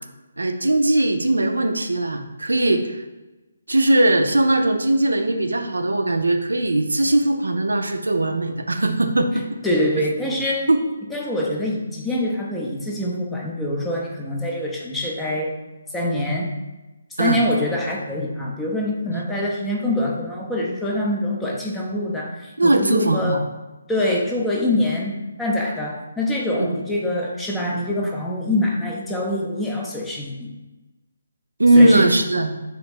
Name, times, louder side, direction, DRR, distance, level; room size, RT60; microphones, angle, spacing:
voice 1, 0.4-3.0 3.7-9.4 10.7-10.8 17.2-17.4 19.1-19.2 22.6-23.4 26.6-26.7 31.6-32.6, right 1 dB, 75° right, 5 dB, 0.3 m, -19 dB
voice 2, 9.6-10.7 11.1-15.5 15.9-16.6 17.2-23.5 23.9-30.5 31.7-32.1, left 1 dB, 5° left, -2 dB, 0.4 m, -25 dB
3.0 x 2.4 x 3.4 m, 1.1 s
figure-of-eight pair, 145°, 0 cm